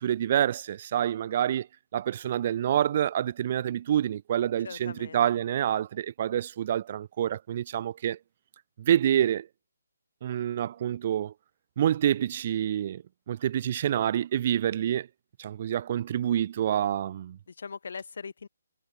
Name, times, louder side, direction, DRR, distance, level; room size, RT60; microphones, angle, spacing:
voice 1, 0.0-1.7 1.9-8.2 8.8-9.5 10.2-11.3 11.8-15.1 15.4-17.4, right 10 dB, 40° right, 3.5 m, -27 dB
voice 2, 4.6-5.2 17.5-18.5, left 5 dB, 65° left, 7.9 m, -40 dB
hypercardioid pair, 155°, 0 cm